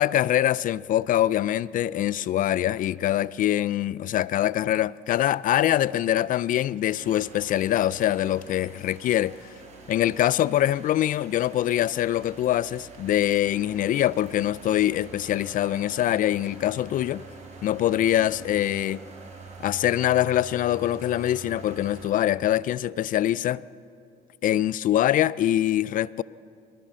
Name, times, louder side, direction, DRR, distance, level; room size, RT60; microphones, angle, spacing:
voice 1, 0.0-9.4 9.9-17.2 17.6-19.0 19.6-23.6 24.4-26.2, left 12 dB, 55° left, 0.4 m, -24 dB
sound 1, 6.9-22.1, right 4 dB, 45° right, 5.5 m, -46 dB
22.0 x 19.0 x 6.3 m
cardioid pair, 110°, 17 cm